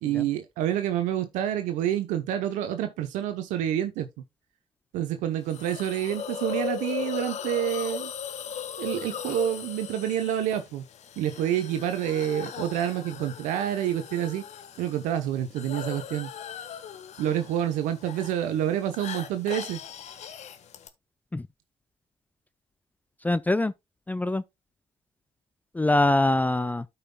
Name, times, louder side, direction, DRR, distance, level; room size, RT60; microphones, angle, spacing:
voice 1, 0.0-4.1 4.9-8.1 8.8-10.8 11.2-14.4 14.8-16.3 17.2-19.8, right 11 dB, 75° right, 0.8 m, -28 dB
Hiss, 5.5-20.9, left 8 dB, 60° left, 1.3 m, -38 dB
voice 2, 23.2-23.7 24.1-24.4 25.7-26.9, left 2 dB, 10° left, 0.5 m, -23 dB
13.5 x 5.6 x 2.2 m
hypercardioid pair, 55°, 13 cm